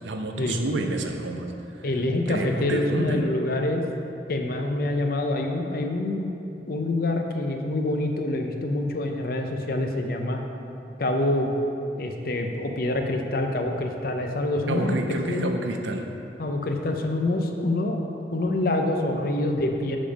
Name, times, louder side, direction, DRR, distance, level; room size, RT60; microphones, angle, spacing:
voice 1, 0.0-1.5 2.3-3.2 14.7-16.0, right 2 dB, 90° right, 4 dB, 0.7 m, -29 dB
voice 2, 1.8-3.8 4.3-6.3 6.7-10.4 11.0-11.5 12.0-15.5 16.4-18.0 18.3-20.0, left 2 dB, 50° left, 3 dB, 0.6 m, -26 dB
7.3 x 5.2 x 5.0 m, 2.9 s
head